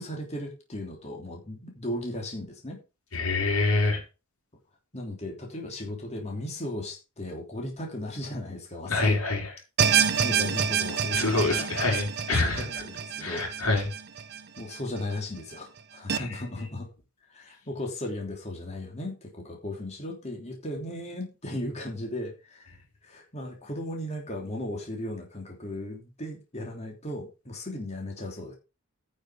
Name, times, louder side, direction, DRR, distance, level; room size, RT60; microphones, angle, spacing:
voice 1, 0.0-2.8 4.9-9.2 9.8-11.9 12.3-13.4 14.6-16.9 17.3-28.5, left 1 dB, 30° left, 3.3 m, -36 dB
voice 2, 3.1-4.0 8.9-9.5 11.1-12.6 13.2-13.9 16.2-16.4, left 3 dB, 85° left, 5.0 m, -26 dB
sound 1, 9.8-15.0 15.4-15.5 16.1-16.2, right 7 dB, 50° right, 1.1 m, -27 dB
9.6 x 6.5 x 6.5 m
head